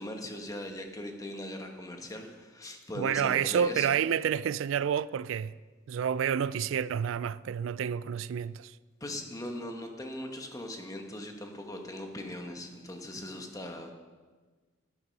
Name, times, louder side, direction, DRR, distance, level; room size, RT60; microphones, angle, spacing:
voice 1, 0.0-4.0 9.0-13.9, left 1 dB, 20° left, 1.4 m, -40 dB
voice 2, 3.0-5.5 5.9-8.7, right 8 dB, 85° right, 0.3 m, -29 dB
11.5 x 11.0 x 5.4 m
head